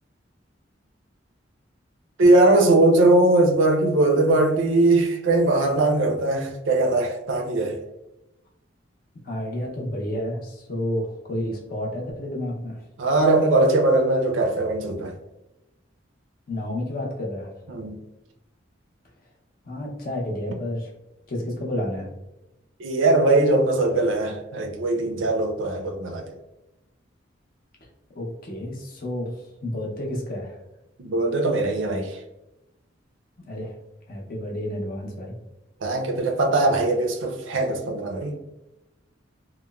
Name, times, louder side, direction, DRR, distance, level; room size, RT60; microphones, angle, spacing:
voice 1, 2.2-7.8 13.0-15.1 17.7-18.0 22.8-26.4 31.0-32.2 35.8-38.3, right 2 dB, 80° right, 4 dB, 0.4 m, -20 dB
voice 2, 9.2-12.8 16.5-17.5 19.6-20.9 21.3-22.1 28.1-30.6 33.4-33.7 34.1-35.3, left 1 dB, 50° left, -1 dB, 0.6 m, -30 dB
2.9 x 2.0 x 2.2 m, 0.94 s
head